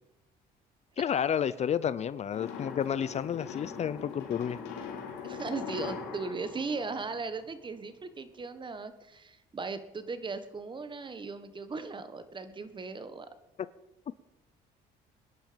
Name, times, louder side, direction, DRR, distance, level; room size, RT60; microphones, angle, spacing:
voice 1, 1.0-4.6, left 8 dB, 40° left, 16 dB, 0.6 m, -30 dB
sound 1, 2.3-7.7, left 6 dB, 85° left, 4.6 m, -41 dB
voice 2, 5.2-13.3, right 4 dB, 30° right, 11 dB, 1.4 m, -38 dB
24.0 x 10.5 x 5.2 m, 0.95 s
cardioid pair, 110°, 17 cm